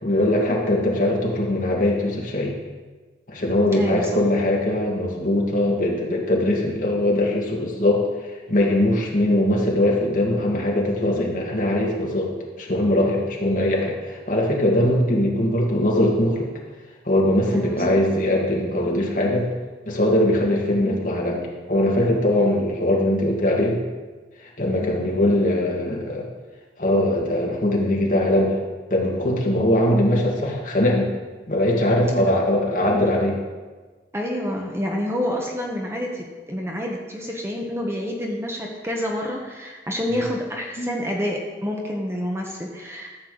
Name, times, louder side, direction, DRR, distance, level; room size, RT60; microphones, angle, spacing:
voice 1, 0.0-2.5 3.3-16.5 17.1-19.5 19.9-23.8 24.4-26.2 26.8-28.6 28.9-31.1 31.5-33.4 40.8-40.9, left 1 dB, 45° left, -2 dB, 1.8 m, -21 dB
voice 2, 3.7-4.1 17.5-17.8 24.8-25.0 34.1-43.1, left 1 dB, 15° right, 0 dB, 1.0 m, -28 dB
13.0 x 7.5 x 3.8 m, 1.3 s
head